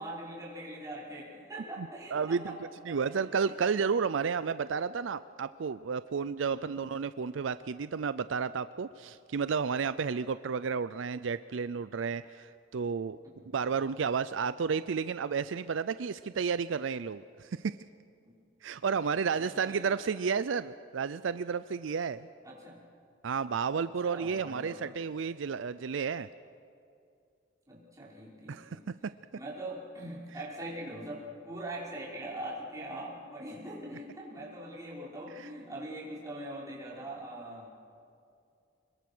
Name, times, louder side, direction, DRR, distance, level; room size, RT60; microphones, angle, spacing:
voice 1, 0.0-2.6 2.9-3.5 6.5-6.6 13.2-13.6 18.2-18.3 19.3-20.1 22.4-22.8 23.7-24.9 27.7-28.9 29.3-37.7, right 1 dB, 15° right, -6 dB, 5.5 m, -42 dB
voice 2, 1.8-2.5 2.9-13.2 13.5-17.7 18.6-22.3 23.2-26.3 28.5-29.1 35.4-35.5, right 6 dB, 75° right, 14 dB, 0.5 m, -32 dB
26.0 x 22.0 x 6.2 m, 2.5 s
head